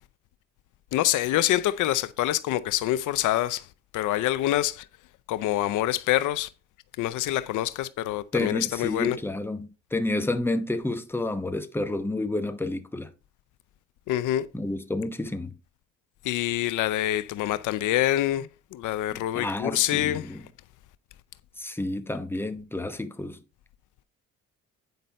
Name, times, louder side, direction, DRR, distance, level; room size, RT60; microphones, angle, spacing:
voice 1, 0.9-3.6 3.9-4.9 5.3-6.5 7.0-9.2 14.1-14.5 16.2-18.5 18.7-20.3, left 14 dB, 80° left, 0.6 m, -26 dB
voice 2, 8.3-13.1 14.5-15.5 19.1-20.4 21.6-23.4, left 2 dB, 5° left, 1.0 m, -30 dB
9.3 x 5.3 x 4.2 m
cardioid pair, 90°, 30 cm